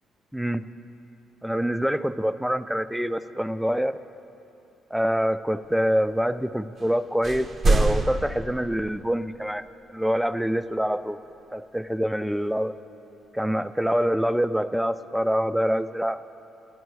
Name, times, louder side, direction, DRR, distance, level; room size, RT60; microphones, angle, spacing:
voice 1, 0.3-0.6 1.4-4.0 4.9-11.2 11.5-12.7 13.3-16.2, equal, 5° right, 13 dB, 0.3 m, -25 dB
sound 1, 6.8-6.9 7.2-9.3, right 2 dB, 45° right, 0.6 m, -25 dB
11.5 x 11.0 x 4.7 m, 2.8 s
cardioid pair, 90°, 0 cm